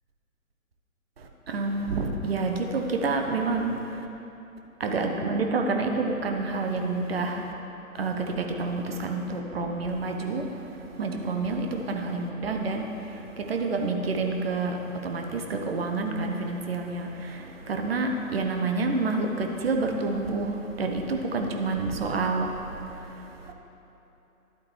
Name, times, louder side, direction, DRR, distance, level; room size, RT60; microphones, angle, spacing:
voice 1, 1.2-4.1 4.8-7.5 7.9-23.5, right 3 dB, 45° right, 3 dB, 0.9 m, -29 dB
11.5 x 8.3 x 3.2 m, 2.9 s
figure-of-eight pair, 135°, 42 cm